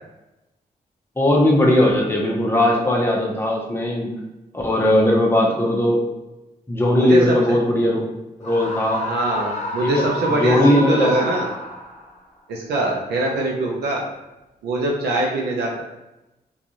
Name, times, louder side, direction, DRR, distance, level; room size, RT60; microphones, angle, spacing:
voice 1, 1.2-4.1 4.5-6.0 6.7-8.1 8.4-9.0 9.8-10.1 10.3-11.1, left 1 dB, 15° left, -2 dB, 0.7 m, -18 dB
voice 2, 6.9-7.4 9.0-11.5 12.5-14.0 14.6-15.8, right 2 dB, 85° right, -2 dB, 0.5 m, -23 dB
Screaming, 8.4-12.1, left 1 dB, 45° left, 0.8 m, -29 dB
2.4 x 2.3 x 2.9 m, 0.96 s
supercardioid pair, 45°, 17 cm